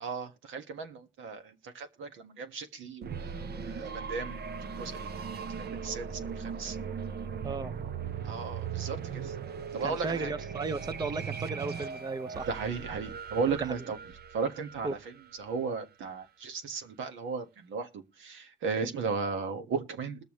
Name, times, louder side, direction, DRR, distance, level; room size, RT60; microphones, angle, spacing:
voice 1, 0.0-4.4 4.8-6.8 8.2-9.3 9.7-10.3 12.5-14.0 14.3-15.1 15.4-20.2, right 5 dB, 80° right, 1.6 m, -35 dB
sound 1, 3.0-15.7, right 6 dB, 55° right, 0.9 m, -39 dB
voice 2, 7.4-7.7 9.8-12.5 13.5-13.6 14.8-14.9, right 3 dB, 20° right, 0.6 m, -35 dB
21.0 x 7.0 x 3.1 m
cardioid pair, 90°, 20 cm